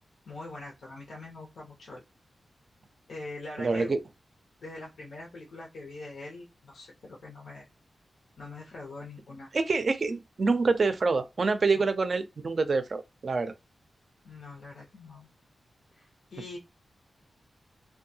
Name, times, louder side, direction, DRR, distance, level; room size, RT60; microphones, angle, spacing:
voice 1, 0.3-2.0 3.1-3.9 4.6-7.7 8.4-9.5 11.7-11.9 14.2-15.3 15.9-16.6, left 2 dB, 85° left, 0.8 m, -43 dB
voice 2, 3.6-4.0 9.5-13.5, right 4 dB, 40° right, 0.4 m, -26 dB
2.7 x 2.2 x 2.7 m
wide cardioid pair, 165°, 0 cm